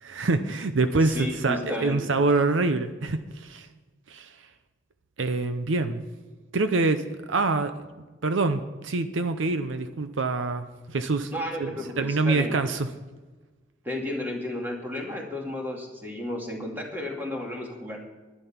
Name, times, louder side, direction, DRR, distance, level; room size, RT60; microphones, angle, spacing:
voice 1, 0.0-3.7 4.1-4.3 5.2-6.0 6.5-7.7 8.2-11.3 11.6-12.9, right 3 dB, 75° right, 9 dB, 0.7 m, -25 dB
voice 2, 1.0-2.0 11.3-12.6 13.8-18.0, left 1 dB, 10° right, -1 dB, 2.4 m, -33 dB
11.5 x 11.0 x 5.9 m, 1.2 s
head